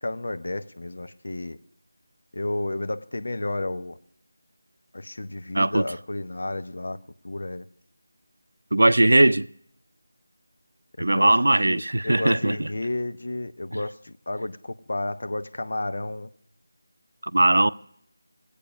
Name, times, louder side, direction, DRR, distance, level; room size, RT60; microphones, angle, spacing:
voice 1, 0.0-1.6 2.3-4.0 4.9-7.7 11.0-16.3, left 2 dB, 60° left, 0.9 m, -32 dB
voice 2, 8.7-9.5 11.0-12.7 17.3-17.7, right 1 dB, 85° right, 0.6 m, -19 dB
17.5 x 8.5 x 6.1 m
figure-of-eight pair, 175°, 0 cm